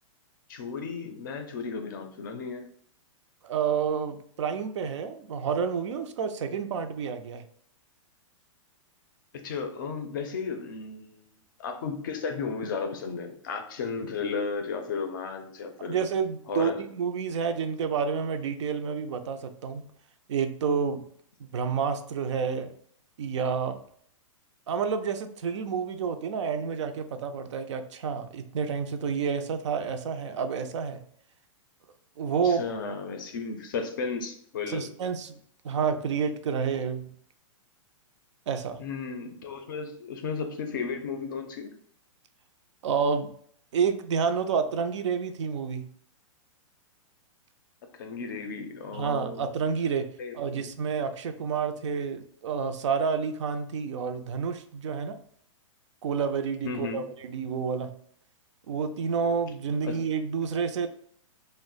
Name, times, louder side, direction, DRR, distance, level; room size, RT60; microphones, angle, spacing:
voice 1, 0.5-2.7 9.3-11.3 11.6-16.0 16.5-16.8 32.4-34.9 38.8-41.7 48.0-49.5 50.2-50.6 56.6-57.0 59.8-60.0, left 5 dB, 40° left, 5 dB, 0.5 m, -34 dB
voice 2, 3.4-7.4 15.8-19.8 20.3-21.0 21.5-22.7 23.2-23.8 24.7-31.0 32.2-32.6 34.7-37.1 38.5-38.8 42.8-43.3 43.7-45.8 48.9-50.1 50.3-55.2 56.0-57.9 58.7-60.9, right 6 dB, 60° right, 8 dB, 0.4 m, -29 dB
2.8 x 2.0 x 3.8 m, 0.64 s
hypercardioid pair, 175°, 17 cm